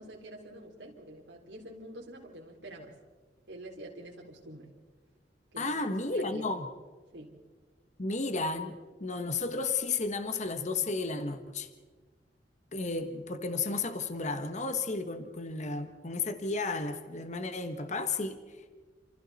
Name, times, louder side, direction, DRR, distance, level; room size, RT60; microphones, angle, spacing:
voice 1, 0.0-3.0 3.5-4.7 5.5-6.5 7.1-7.4, right 1 dB, 85° right, -2 dB, 3.9 m, -47 dB
voice 2, 5.6-6.7 8.0-11.7 12.7-18.4, left 3 dB, 40° left, 8 dB, 1.4 m, -33 dB
29.0 x 27.5 x 4.2 m, 1.4 s
head